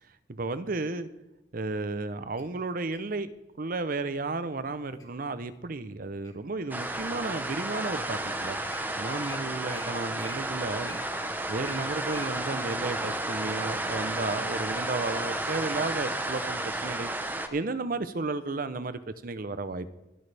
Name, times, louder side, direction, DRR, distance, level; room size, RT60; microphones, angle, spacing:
voice 1, 0.3-1.1 1.5-3.3 3.6-8.6 9.0-11.0 11.5-17.1 17.5-19.9, right 3 dB, 50° right, 13 dB, 0.7 m, -33 dB
Wild animals, 2.4-3.1 3.8-4.1 4.6-5.1 5.6-6.5 7.1-7.2 7.8-7.9 8.1-8.2 8.5-8.8 9.2-9.4 9.7-9.8 10.1-12.3 12.8-12.9, left 2 dB, 20° left, 2.6 m, -48 dB
sound 1, 6.7-17.5, right 1 dB, 10° right, 0.9 m, -32 dB
24.0 x 8.4 x 3.4 m, 0.94 s
head